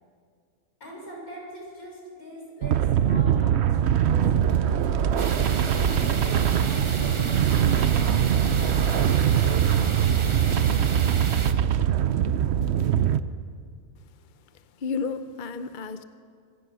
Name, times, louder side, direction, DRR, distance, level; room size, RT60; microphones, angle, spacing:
voice 1, 0.8-4.8 5.9-10.7, equal, 75° left, -2 dB, 6.6 m, -41 dB
sound 1, 2.6-13.2, right 9 dB, 60° right, 0.8 m, -22 dB
sound 2, 5.2-11.5, right 3 dB, 25° right, 0.8 m, -34 dB
voice 2, 14.5-16.0, left 5 dB, 45° left, 10 dB, 0.7 m, -32 dB
25.5 x 16.5 x 6.3 m, 2.1 s
omnidirectional pair, 1.5 m